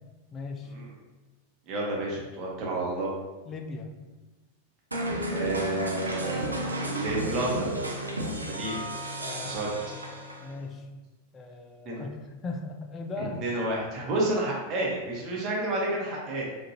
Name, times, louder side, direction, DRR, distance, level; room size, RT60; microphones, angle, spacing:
voice 1, 0.3-0.8 3.5-4.0 9.2-9.7 10.4-10.9 11.3-13.4, left 3 dB, 25° left, 3 dB, 0.5 m, -38 dB
voice 2, 1.7-3.1 5.3-6.5 6.8-7.7 8.4-8.8 9.4-9.7 11.8-12.0 13.2-16.5, right 2 dB, 35° right, -4 dB, 1.1 m, -30 dB
sound 1, 4.9-10.6, right 1 dB, 80° right, 0.5 m, -32 dB
5.2 x 2.6 x 2.8 m, 1.2 s
figure-of-eight pair, 90°, 0 cm